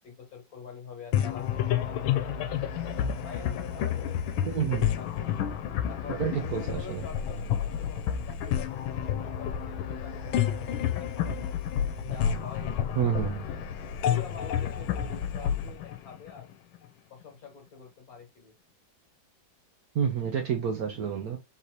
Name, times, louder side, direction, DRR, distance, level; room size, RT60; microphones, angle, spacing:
voice 1, 0.0-2.5 3.2-4.4 5.0-5.5 5.9-11.4 12.0-13.6 14.1-16.5 17.1-18.5, left 6 dB, 50° left, 1.7 m, -46 dB
sound 1, 1.1-16.8, left 9 dB, 90° left, 1.4 m, -30 dB
voice 2, 4.5-4.9 6.1-7.0 13.0-13.4 19.9-21.4, right 8 dB, 65° right, 1.0 m, -29 dB
4.1 x 2.8 x 4.6 m
omnidirectional pair, 2.1 m